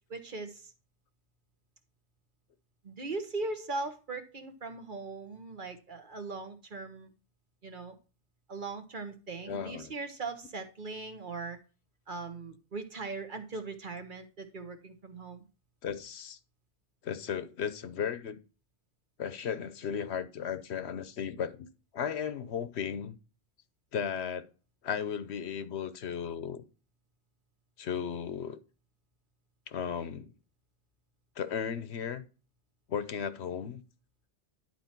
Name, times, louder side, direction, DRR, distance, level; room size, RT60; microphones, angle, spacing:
voice 1, 0.1-0.7 2.8-7.1 7.6-8.0 8.5-11.6 12.1-15.5, right 3 dB, 50° right, 1.3 m, -39 dB
voice 2, 9.5-9.9 15.8-16.4 17.0-18.4 19.2-21.7 21.9-23.1 23.9-24.5 24.8-26.6 27.8-28.6 29.7-30.3 31.4-32.2 32.9-33.8, left 7 dB, 75° left, 1.0 m, -35 dB
10.5 x 4.4 x 4.4 m
omnidirectional pair, 1.1 m